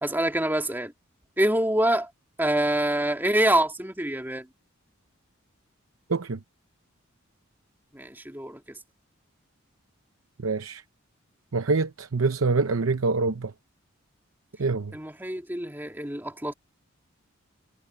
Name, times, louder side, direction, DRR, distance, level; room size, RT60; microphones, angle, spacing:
voice 1, 0.0-0.9 1.4-2.1 2.4-4.5 7.9-8.6 14.9-16.5, right 1 dB, 10° right, 2.4 m, -25 dB
voice 2, 10.4-10.8 11.5-13.5 14.6-14.9, right 4 dB, 80° right, 0.7 m, -25 dB
head